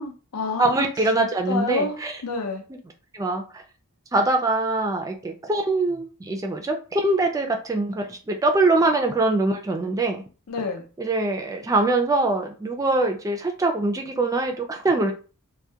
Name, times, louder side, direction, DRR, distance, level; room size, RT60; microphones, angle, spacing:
voice 1, 0.0-0.7 1.5-2.6 10.5-10.8, left 4 dB, 85° left, 0.6 m, -28 dB
voice 2, 0.6-2.2 2.7-2.8 3.1-3.6 4.1-10.2 11.0-15.1, right 2 dB, 15° right, 0.3 m, -23 dB
2.2 x 2.1 x 2.7 m
head